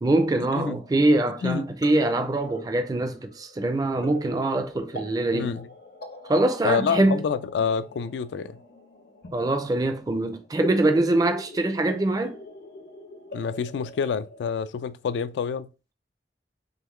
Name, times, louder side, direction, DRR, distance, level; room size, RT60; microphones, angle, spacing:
voice 1, 0.0-5.6 6.3-7.2 9.3-12.4, right 2 dB, 20° right, 0.4 m, -23 dB
sound 1, 0.7-14.5, left 1 dB, 60° left, 0.7 m, -43 dB
voice 2, 5.3-5.7 6.6-8.6 13.3-15.7, left 6 dB, 80° left, 0.3 m, -27 dB
3.8 x 3.1 x 3.0 m
head